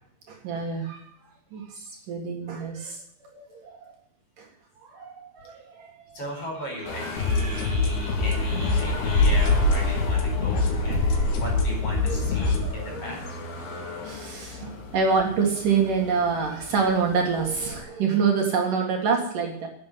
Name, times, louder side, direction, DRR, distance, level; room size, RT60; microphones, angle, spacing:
voice 1, 0.3-1.0 1.5-3.0 3.3-3.9 4.4-4.5 4.8-6.2 7.0-8.2 8.7-9.0 12.0-13.0 14.0-19.7, right 5 dB, 60° right, 1 dB, 3.2 m, -27 dB
voice 2, 6.1-13.4, equal, 35° left, 1 dB, 5.7 m, -37 dB
sound 1, 6.9-17.8, left 1 dB, 65° left, 4.0 m, -30 dB
sound 2, 7.2-12.6, left 4 dB, 85° left, 4.1 m, -25 dB
11.5 x 8.4 x 9.3 m, 0.70 s
omnidirectional pair, 4.6 m